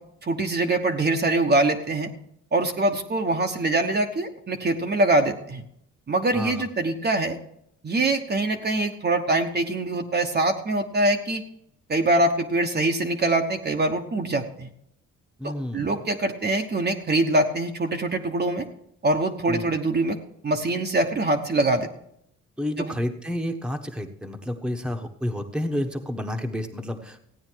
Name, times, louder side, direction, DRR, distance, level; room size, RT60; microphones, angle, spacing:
voice 1, 0.2-2.1 2.5-5.6 6.1-7.4 7.8-11.4 11.9-14.7 15.4-18.7 19.0-20.2 20.4-21.9 22.8-22.9, right 2 dB, 35° right, 4 dB, 1.1 m, -24 dB
voice 2, 6.3-6.7 15.4-15.9 19.5-19.7 22.6-27.3, left 1 dB, 5° right, 5 dB, 1.2 m, -30 dB
15.5 x 9.3 x 4.6 m, 0.74 s
cardioid pair, 90°, 30 cm